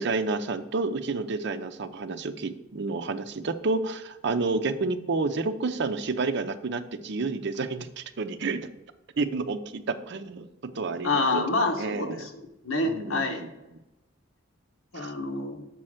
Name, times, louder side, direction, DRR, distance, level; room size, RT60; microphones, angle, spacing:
voice 1, 0.0-8.7 9.2-11.5 11.8-12.3 12.8-13.5 15.0-15.1, right 3 dB, 60° right, 10 dB, 0.6 m, -30 dB
voice 2, 11.0-13.4 14.9-15.7, left 2 dB, 90° left, 2 dB, 1.2 m, -28 dB
6.9 x 4.3 x 6.4 m, 0.95 s
head